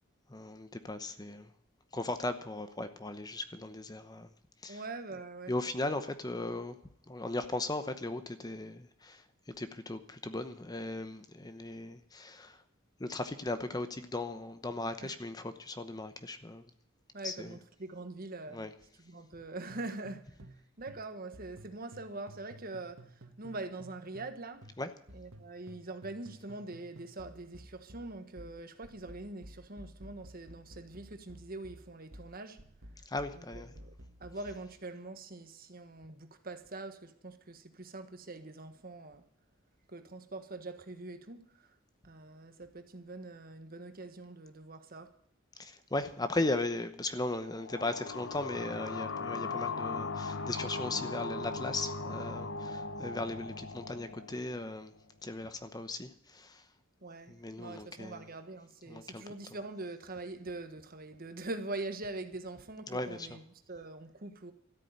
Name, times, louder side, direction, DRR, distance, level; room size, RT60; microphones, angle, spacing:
voice 1, 0.3-1.5 1.9-4.3 4.6-4.8 5.5-6.8 7.1-12.6 13.0-16.7 17.2-17.6 18.5-18.7 24.8-24.9 33.1-33.7 45.6-54.9 55.2-56.6 57.3-58.3 58.9-59.2 62.9-63.4, left 2 dB, 20° left, 0.8 m, -37 dB
voice 2, 4.7-5.5 15.0-15.1 17.1-18.7 19.0-20.2 20.8-23.0 23.4-24.6 25.1-32.6 33.5-33.9 34.2-39.2 39.9-41.4 42.0-45.1 57.0-63.4 63.7-64.5, right 2 dB, 45° right, 1.4 m, -43 dB
sound 1, 19.7-20.6 20.9-24.4 24.6-34.7, right 1 dB, 80° right, 1.9 m, -53 dB
sound 2, 47.4-54.9, left 4 dB, 65° left, 0.9 m, -39 dB
13.5 x 8.5 x 9.3 m
head